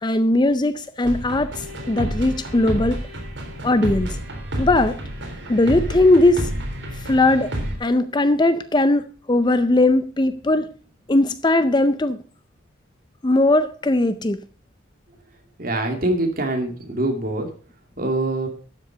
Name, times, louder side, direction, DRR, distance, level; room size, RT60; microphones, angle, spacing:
voice 1, 0.0-3.0 3.6-4.2 4.6-5.0 5.5-6.5 6.9-7.5 7.8-10.7 11.1-12.2 13.2-14.4, left 2 dB, 20° left, 0.5 m, -19 dB
sound 1, 1.0-7.8, right 1 dB, 65° right, 3.8 m, -29 dB
voice 2, 15.6-17.5 18.0-18.5, right 1 dB, 45° right, 2.5 m, -24 dB
12.5 x 7.5 x 4.9 m
head